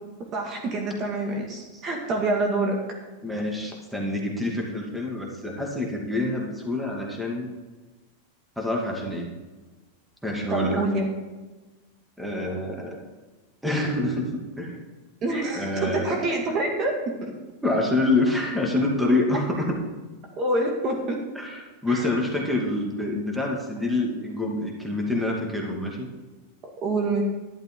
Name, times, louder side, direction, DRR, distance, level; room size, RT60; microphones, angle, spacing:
voice 1, 0.3-2.8 10.5-11.1 15.2-17.3 19.3-19.4 20.4-21.2 21.9-22.1 26.8-27.2, right 2 dB, 35° right, 1 dB, 1.9 m, -26 dB
voice 2, 3.2-7.5 8.6-9.3 10.2-10.9 12.2-13.0 13.6-14.8 15.5-16.1 17.6-19.8 21.4-26.1, left 2 dB, ahead, -1 dB, 2.3 m, -26 dB
11.5 x 11.5 x 3.8 m, 1.2 s
supercardioid pair, 130°, 0 cm